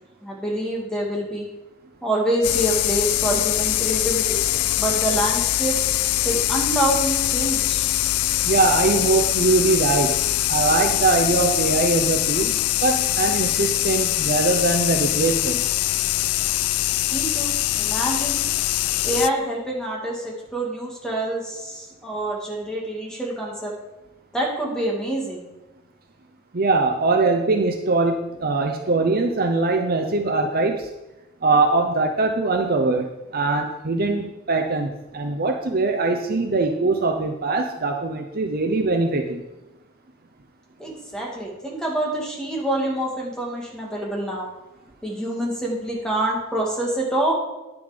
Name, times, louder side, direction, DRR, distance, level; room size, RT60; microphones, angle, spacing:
voice 1, 0.2-1.5 2.0-4.4 4.8-5.7 6.2-7.9 17.1-18.4 19.0-23.7 24.3-25.4 40.8-44.5 45.0-47.3, right 1 dB, 5° left, -3 dB, 2.2 m, -26 dB
sound 1, 2.4-19.3, left 15 dB, 80° left, 0.4 m, -23 dB
voice 2, 8.4-10.2 10.5-15.6 26.5-30.9 31.4-39.4, right 3 dB, 40° right, 3 dB, 0.7 m, -22 dB
9.9 x 7.0 x 5.2 m, 1.0 s
head